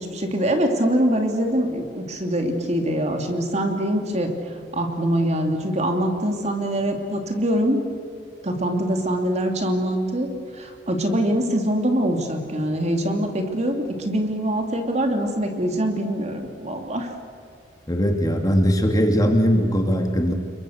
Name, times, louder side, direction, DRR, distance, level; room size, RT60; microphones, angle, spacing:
voice 1, 0.0-4.3 4.7-7.8 8.4-10.3 10.5-17.1, right 1 dB, 40° right, 4 dB, 2.8 m, -23 dB
voice 2, 17.9-20.3, equal, 20° left, 4 dB, 2.1 m, -20 dB
29.0 x 22.5 x 6.6 m, 2.3 s
head